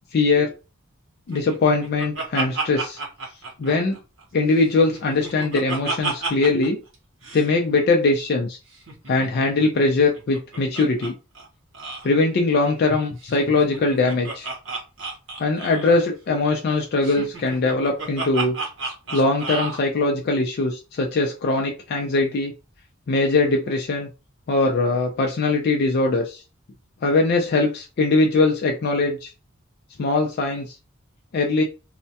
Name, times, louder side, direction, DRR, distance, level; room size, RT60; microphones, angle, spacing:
voice 1, 0.1-0.5 1.3-3.0 3.6-3.9 4.3-6.8 7.3-8.6 9.1-11.1 12.0-14.5 15.4-18.6 19.1-22.5 23.1-24.1 24.5-26.4 27.0-29.3 30.0-30.7 31.3-31.6, left 3 dB, 50° left, 2 dB, 0.4 m, -21 dB
Laughter, 1.3-4.2 4.6-6.7 6.9-7.0 7.2-7.5 8.7-11.1 11.4-11.5 11.7-12.1 13.2-16.0 17.0-19.8, right 3 dB, 60° right, 0.8 m, -32 dB
2.2 x 2.1 x 2.7 m, 0.30 s
head